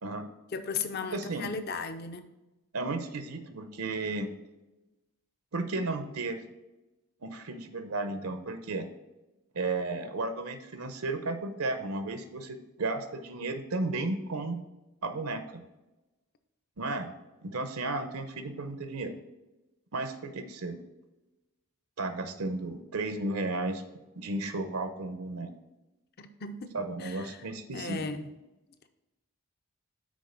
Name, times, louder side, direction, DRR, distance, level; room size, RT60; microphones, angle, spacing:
voice 1, 0.5-2.3 26.2-26.7 27.0-27.4 27.7-28.3, left 4 dB, 45° left, 9 dB, 0.6 m, -36 dB
voice 2, 1.1-1.5 2.7-4.3 5.5-6.4 7.2-8.9 9.5-14.6 15.0-15.6 16.8-17.1 17.4-19.1 19.9-20.8 22.0-23.8 24.2-25.5 26.7-28.0, right 2 dB, 80° right, 8 dB, 0.8 m, -34 dB
6.3 x 4.3 x 5.6 m, 1.0 s
head